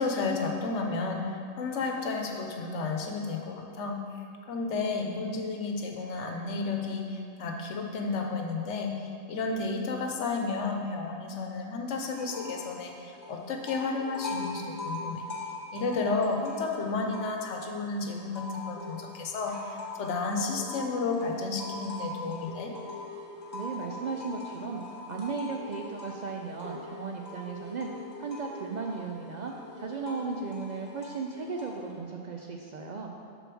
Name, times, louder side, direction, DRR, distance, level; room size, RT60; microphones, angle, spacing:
voice 1, 0.0-4.0 4.5-8.9 9.3-15.2 15.7-19.6 20.0-22.7, left 3 dB, 85° left, 3 dB, 1.1 m, -32 dB
sound 1, 12.1-12.8 13.0-17.7 18.1-31.9, left 2 dB, 40° left, 1.3 m, -42 dB
voice 2, 23.5-24.8 25.1-27.9 28.2-33.1, right 4 dB, 60° right, 1 dB, 0.5 m, -36 dB
6.7 x 4.1 x 6.1 m, 2.4 s
omnidirectional pair, 1.2 m